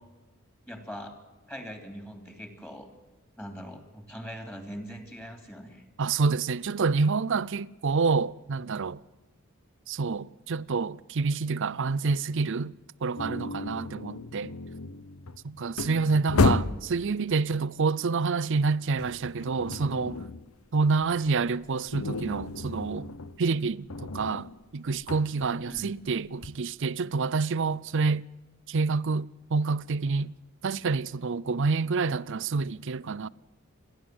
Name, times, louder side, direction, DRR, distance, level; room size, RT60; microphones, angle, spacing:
voice 1, 0.7-1.1 1.5-2.9 3.4-5.8 15.8-16.2 25.6-26.0, equal, 10° left, 2.9 m, -41 dB
voice 2, 6.0-9.0 9.9-12.7 13.0-14.5 15.4-20.2 20.7-23.1 23.4-24.5 24.7-28.3 28.7-30.3 30.6-33.3, right 4 dB, 60° right, 0.5 m, -28 dB
sound 1, 13.2-17.0 18.4-20.5 20.8-26.6, left 3 dB, 80° left, 0.8 m, -32 dB
29.0 x 11.5 x 7.8 m
head